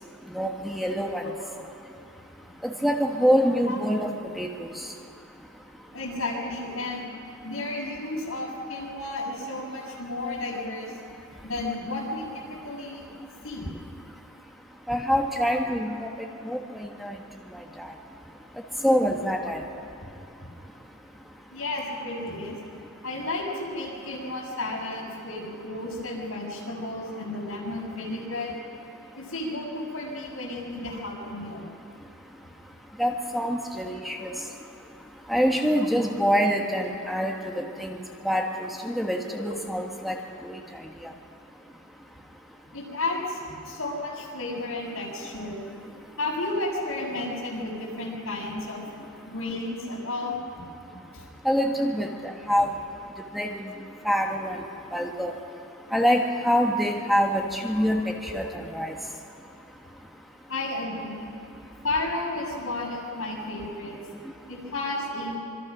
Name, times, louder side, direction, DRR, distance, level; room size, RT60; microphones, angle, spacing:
voice 1, 0.3-1.2 2.6-4.7 14.9-15.9 16.4-17.1 17.8-17.9 18.8-19.6 33.0-34.3 35.3-38.0 38.2-40.2 40.4-40.6 51.4-52.7 53.3-53.6 54.0-54.6 54.9-55.3 55.9-58.9, equal, ahead, 1 dB, 1.5 m, -25 dB
voice 2, 3.7-4.1 5.9-7.1 7.4-11.0 11.4-13.0 13.4-13.7 21.5-22.5 23.0-28.5 29.2-31.6 39.3-39.5 42.7-45.6 46.2-48.8 49.3-50.4 50.9-51.2 58.2-58.3 60.5-61.3 61.8-64.0 64.5-65.4, left 2 dB, 85° left, -3 dB, 7.2 m, -32 dB
26.0 x 24.0 x 6.2 m, 2.8 s
head